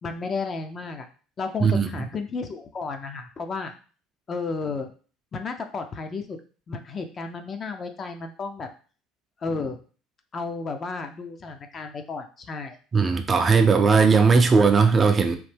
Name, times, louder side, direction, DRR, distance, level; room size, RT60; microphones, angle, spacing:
voice 1, 0.0-1.1 1.4-3.7 4.3-4.9 5.3-6.4 6.7-8.7 9.4-9.8 10.3-12.8, left 4 dB, 35° left, 6 dB, 0.5 m, -32 dB
voice 2, 12.9-15.4, right 5 dB, 30° right, 6 dB, 0.4 m, -18 dB
3.1 x 2.1 x 3.3 m, 0.39 s
supercardioid pair, 90°, 0 cm